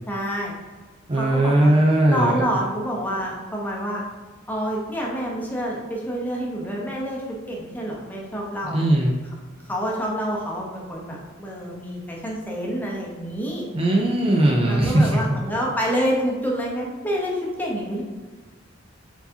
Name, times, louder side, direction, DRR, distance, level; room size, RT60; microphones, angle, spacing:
voice 1, 0.1-0.5 1.1-1.7 2.1-4.0 4.5-7.2 7.5-8.8 9.7-13.7 14.7-18.0, equal, 10° left, -3 dB, 0.8 m, -27 dB
voice 2, 1.1-2.4 8.7-9.2 13.7-15.4, right 1 dB, 30° right, -1 dB, 0.5 m, -19 dB
4.6 x 4.1 x 2.7 m, 1.4 s
head